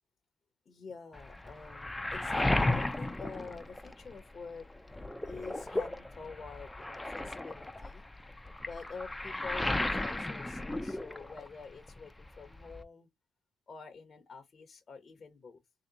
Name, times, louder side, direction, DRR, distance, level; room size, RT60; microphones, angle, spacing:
voice 1, 0.7-4.7 5.3-8.0 8.6-13.1 13.7-15.6, left 5 dB, 40° left, 0.9 m, -47 dB
Waves surf, 1.1-4.3 4.7-11.6 11.9-12.8, left 2 dB, 10° left, 0.5 m, -35 dB
3.1 x 2.8 x 3.8 m
cardioid pair, 90°, 0 cm